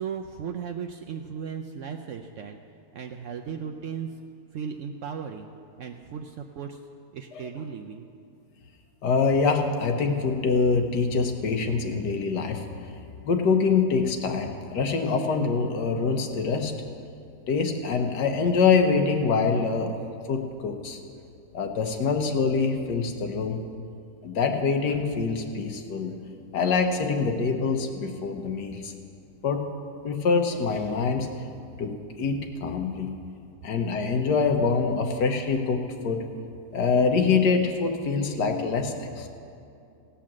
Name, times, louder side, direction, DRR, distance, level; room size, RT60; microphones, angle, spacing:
voice 1, 0.0-2.6 2.9-4.1 4.5-5.5 5.8-6.8 7.1-8.1, right 7 dB, 70° right, 4 dB, 0.8 m, -36 dB
voice 2, 9.0-12.7 13.2-16.7 17.5-20.0 20.3-21.0 21.5-23.6 24.2-26.1 26.5-28.9 29.4-29.6 30.0-31.3 31.8-33.1 33.6-35.8 36.0-36.2 36.7-39.3, left 4 dB, 85° left, 4 dB, 1.6 m, -25 dB
17.0 x 5.7 x 7.4 m, 2.5 s
omnidirectional pair, 1.7 m